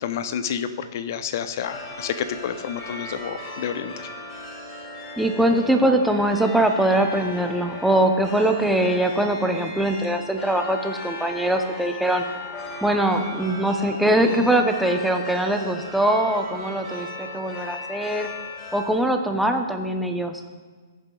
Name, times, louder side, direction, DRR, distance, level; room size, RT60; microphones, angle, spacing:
voice 1, 0.0-4.1, left 8 dB, 55° left, 11 dB, 0.6 m, -29 dB
sound 1, 1.6-18.9, left 2 dB, 25° left, 1.9 m, -37 dB
voice 2, 5.2-12.2 12.8-18.3 18.7-20.4, right 1 dB, ahead, 4 dB, 0.6 m, -22 dB
14.5 x 6.9 x 2.3 m, 1.4 s
hypercardioid pair, 135°, 2 cm